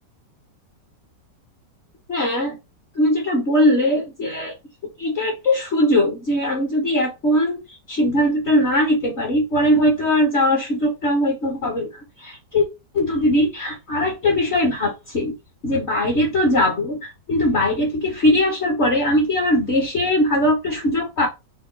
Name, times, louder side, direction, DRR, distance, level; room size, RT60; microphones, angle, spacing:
voice 1, 2.1-2.6 2.9-4.5 5.0-12.7 12.9-15.3 15.6-21.3, left 1 dB, 50° left, 1.0 m, -20 dB
3.6 x 2.3 x 3.7 m
omnidirectional pair, 1.9 m